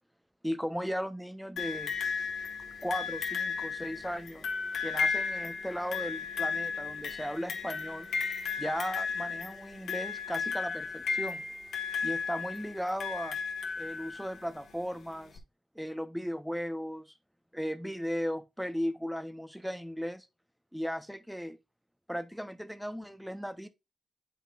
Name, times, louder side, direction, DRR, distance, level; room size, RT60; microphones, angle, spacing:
voice 1, 0.4-1.9 2.8-4.5 4.8-8.1 8.6-11.4 12.0-13.4 13.8-15.4 15.7-17.1 17.5-20.3 20.7-21.6 22.1-23.7, equal, ahead, 0.8 m, -36 dB
sound 1, 1.6-14.4 15.4-15.5, left 5 dB, 75° left, 1.5 m, -34 dB
8.1 x 5.7 x 2.4 m
cardioid pair, 80°, 0 cm